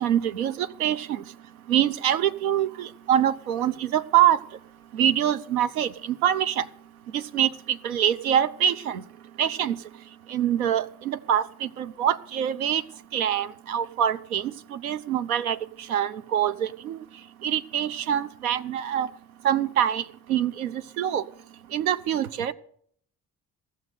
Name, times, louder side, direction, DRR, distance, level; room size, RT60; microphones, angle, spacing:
voice 1, 0.0-1.2 1.7-4.4 4.9-5.9 6.2-6.6 7.1-9.0 9.4-9.8 10.3-12.8 13.1-15.6 15.9-17.0 17.4-19.1 19.4-20.0 20.3-21.2 21.7-22.5, right 10 dB, 75° right, 0.5 m, -24 dB
15.5 x 6.4 x 9.2 m
figure-of-eight pair, 45°, 43 cm